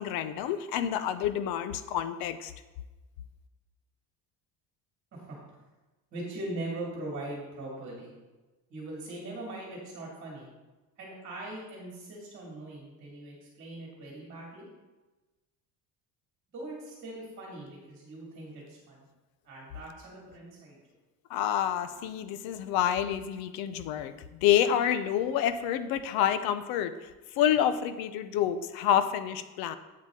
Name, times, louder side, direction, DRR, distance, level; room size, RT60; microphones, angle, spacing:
voice 1, 0.0-2.5 21.3-24.1 24.4-26.9 27.4-29.8, left 10 dB, 85° left, 11 dB, 0.7 m, -28 dB
voice 2, 5.1-5.6 6.1-8.1 8.7-10.5 11.0-14.7 16.5-19.0 19.4-20.8, right 1 dB, 35° right, -4 dB, 2.3 m, -41 dB
8.6 x 8.2 x 3.7 m, 1.2 s
cardioid pair, 175°, 35 cm